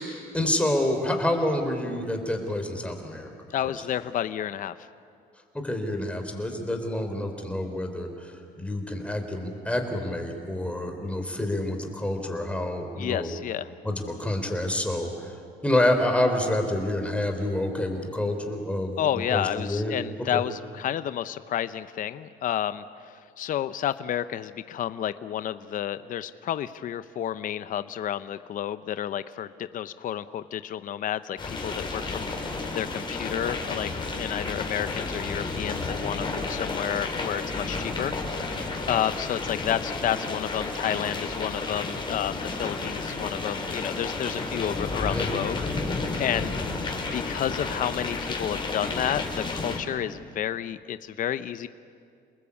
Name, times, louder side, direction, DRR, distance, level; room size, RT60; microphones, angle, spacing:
voice 1, 0.0-3.3 3.6-3.7 5.5-13.3 13.8-15.3 15.6-19.0 19.3-20.0 20.3-20.4 45.1-45.3, left 1 dB, 5° left, 4 dB, 3.8 m, -28 dB
voice 2, 3.5-4.9 13.0-13.7 19.0-38.1 38.9-45.9 46.2-46.6 47.1-51.7, left 10 dB, 50° left, 13 dB, 0.7 m, -31 dB
sound 1, 31.4-49.8, left 3 dB, 30° left, 4.8 m, -32 dB
29.0 x 20.0 x 8.5 m, 2.3 s
cardioid pair, 110°, 17 cm